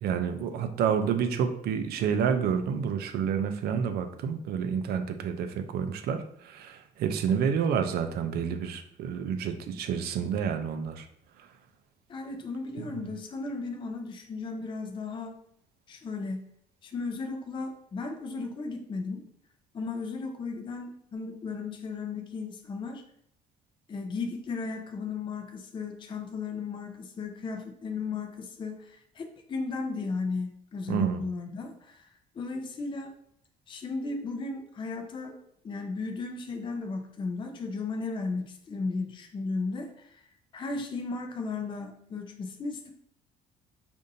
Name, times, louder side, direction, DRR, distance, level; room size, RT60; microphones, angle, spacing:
voice 1, 0.0-11.1 12.8-13.0 30.9-31.2, right 7 dB, 65° right, 7 dB, 0.5 m, -29 dB
voice 2, 12.1-15.3 15.9-16.4 16.8-19.2 19.7-23.0 23.9-32.1 32.3-33.1 33.7-35.4 35.6-40.2 40.5-42.9, left 4 dB, 30° left, 3 dB, 0.5 m, -35 dB
5.0 x 2.6 x 2.6 m, 0.68 s
cardioid pair, 110°, 17 cm